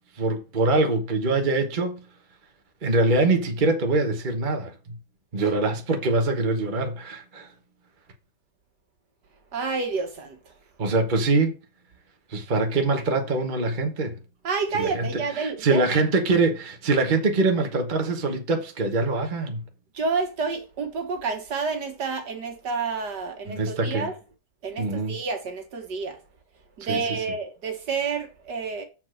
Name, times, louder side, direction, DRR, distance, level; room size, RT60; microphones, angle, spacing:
voice 1, 0.2-2.0 2.8-4.7 5.3-7.5 10.8-11.5 12.3-14.2 14.8-15.1 15.3-19.6 23.5-24.1 24.8-25.1 26.9-27.0, right 3 dB, 30° right, 1.1 m, -23 dB
voice 2, 9.5-10.4 14.4-16.0 19.9-24.1 24.6-26.2 26.8-28.9, right 4 dB, 80° right, 2.1 m, -29 dB
7.5 x 4.2 x 6.2 m
omnidirectional pair, 1.8 m